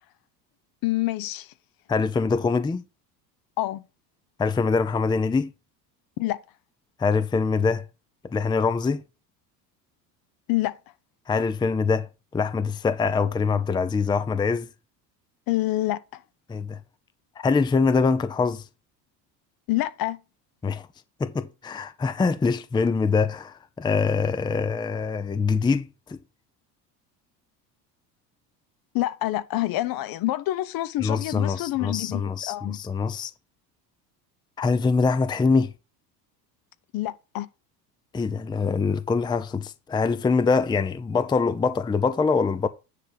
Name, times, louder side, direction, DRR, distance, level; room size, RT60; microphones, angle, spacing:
voice 1, 0.8-1.5 3.6-3.8 6.2-6.4 10.5-10.8 15.5-16.2 19.7-20.2 28.9-32.8 36.9-37.5, left 16 dB, 45° left, 0.8 m, -27 dB
voice 2, 1.9-2.8 4.4-5.5 7.0-7.9 8.3-9.0 11.3-12.1 12.3-14.7 16.5-16.8 17.4-18.6 20.6-20.9 21.2-26.2 31.0-33.3 34.6-35.7 38.1-42.7, left 4 dB, 10° left, 0.6 m, -24 dB
9.9 x 3.4 x 6.7 m
hypercardioid pair, 80°, 50 cm